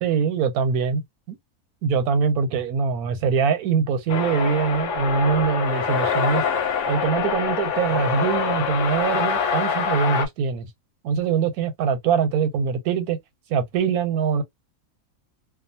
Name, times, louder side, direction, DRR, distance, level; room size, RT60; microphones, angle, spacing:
voice 1, 0.0-1.0 1.3-1.4 1.8-6.4 6.9-10.7 11.0-13.2 13.5-14.4, right 6 dB, 90° right, 1.2 m, -23 dB
sound 1, 4.1-10.3, left 6 dB, 65° left, 0.8 m, -25 dB
2.5 x 2.3 x 2.6 m
omnidirectional pair, 1.5 m